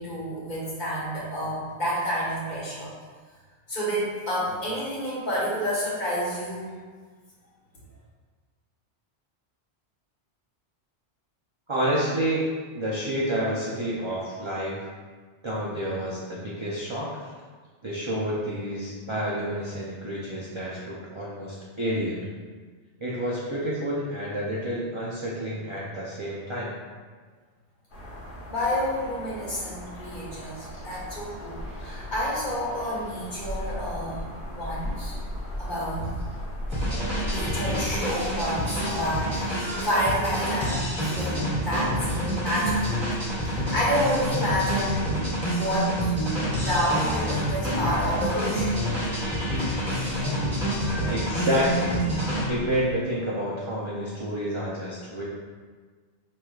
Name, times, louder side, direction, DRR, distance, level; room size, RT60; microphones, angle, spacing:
voice 1, 0.0-2.9 3.7-6.7 28.5-35.2 35.6-36.1 37.2-43.0 43.4-45.1 45.5-48.9, equal, 45° left, -7 dB, 1.2 m, -29 dB
voice 2, 11.7-12.5 12.7-14.8 15.4-17.2 17.8-22.3 23.0-26.7 51.1-52.0 52.5-55.2, equal, 40° right, -7 dB, 0.4 m, -29 dB
sound 1, 27.9-39.1, left 1 dB, 70° left, 1.3 m, -36 dB
sound 2, 36.7-52.8, equal, 25° right, 1.3 m, -27 dB
4.6 x 3.3 x 2.3 m, 1.5 s
omnidirectional pair, 1.2 m